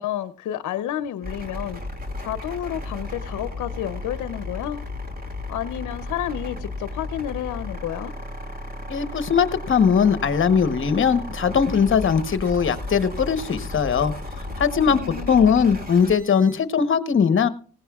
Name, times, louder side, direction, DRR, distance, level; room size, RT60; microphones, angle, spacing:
voice 1, 0.0-1.8 2.3-4.8 5.5-8.1 14.9-15.5, left 11 dB, 75° left, 12 dB, 0.7 m, -30 dB
sound 1, 1.2-16.6, left 1 dB, 30° right, 3.0 m, -34 dB
voice 2, 8.9-14.1 14.6-15.0 15.3-17.5, left 6 dB, 40° left, 12 dB, 1.0 m, -20 dB
18.0 x 16.0 x 2.3 m, 0.41 s
cardioid pair, 90°, 30 cm